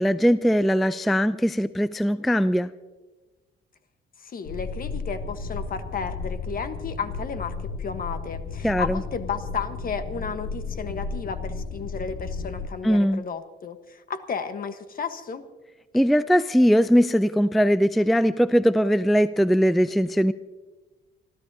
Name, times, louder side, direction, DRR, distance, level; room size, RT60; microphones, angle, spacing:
voice 1, 0.0-2.7 8.6-9.0 12.8-13.2 15.9-20.3, equal, ahead, 14 dB, 0.3 m, -20 dB
voice 2, 4.2-15.4, left 6 dB, 45° left, 9 dB, 1.2 m, -33 dB
sound 1, 4.4-12.7, left 4 dB, 85° left, 1.7 m, -33 dB
27.5 x 13.5 x 2.8 m, 1.2 s
cardioid pair, 90°, 20 cm